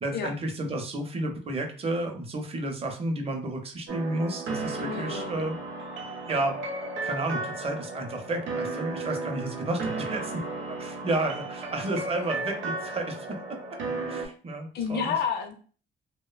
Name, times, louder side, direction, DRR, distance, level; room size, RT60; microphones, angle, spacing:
voice 1, 0.0-5.6 6.3-6.6 7.0-10.3 10.8-13.4 14.1-15.1, right 2 dB, 30° right, 3 dB, 0.6 m, -31 dB
sound 1, 3.9-14.3, right 3 dB, 75° right, 0.6 m, -34 dB
voice 2, 4.8-5.4 14.7-15.5, left 6 dB, 55° left, 4 dB, 0.5 m, -30 dB
2.6 x 2.1 x 2.3 m, 0.41 s
cardioid pair, 90°, 20 cm